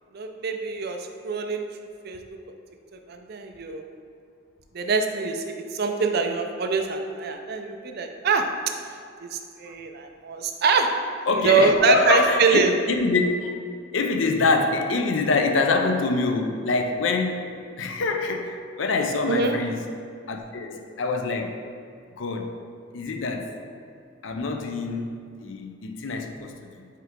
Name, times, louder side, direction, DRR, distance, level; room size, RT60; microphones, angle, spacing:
voice 1, 0.1-1.6 2.0-2.2 2.9-3.8 4.7-8.5 9.2-10.9 11.3-12.8 19.3-19.6, right 4 dB, 55° right, 5 dB, 0.5 m, -24 dB
voice 2, 11.3-12.6 12.9-13.5 13.9-17.4 17.8-19.8 20.3-21.6 22.2-22.6 22.9-23.5 24.2-26.9, left 3 dB, 80° left, 4 dB, 0.5 m, -25 dB
5.6 x 4.6 x 3.6 m, 2.3 s
head